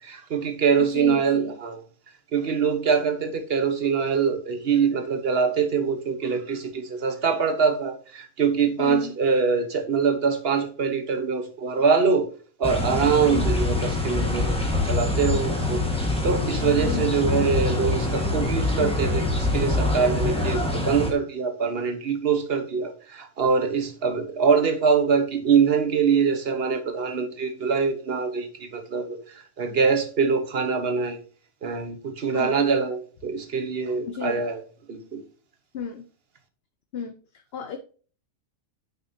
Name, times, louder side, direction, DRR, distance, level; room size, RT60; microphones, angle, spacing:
voice 1, 0.0-1.8 2.3-12.3 12.6-31.2 31.6-34.6 34.9-35.2, right 5 dB, 50° right, 1.3 m, -24 dB
voice 2, 0.8-1.5 8.8-9.2 13.3-13.6 16.8-17.2 32.3-32.7 34.1-34.4 35.7-36.1 36.9-37.8, left 6 dB, 55° left, 0.8 m, -34 dB
sound 1, 12.6-21.1, left 2 dB, 5° left, 1.4 m, -25 dB
9.1 x 5.9 x 2.7 m
omnidirectional pair, 1.4 m